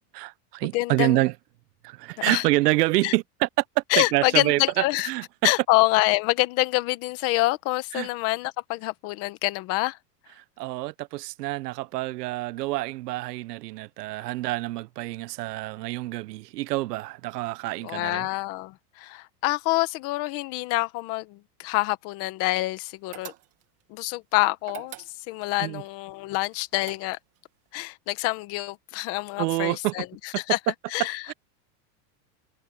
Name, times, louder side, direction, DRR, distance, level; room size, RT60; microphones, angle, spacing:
voice 1, 0.1-1.3 1.8-3.5 3.8-5.5 7.9-8.1 10.6-18.3 25.6-25.8 29.4-29.9 30.3-30.4 31.3-31.4, right 19 dB, 85° right, 0.7 m, -27 dB
voice 2, 0.7-1.2 2.2-2.4 3.0-3.1 3.9-5.1 5.4-10.0 17.8-23.3 23.9-25.0 25.3-27.2 27.7-30.1 30.5-30.6 30.9-31.2, left 19 dB, 30° left, 0.9 m, -26 dB
sound 1, 23.1-23.8 24.6-25.5 26.4-27.4, right 15 dB, 30° right, 2.0 m, -43 dB
supercardioid pair, 170°, 47 cm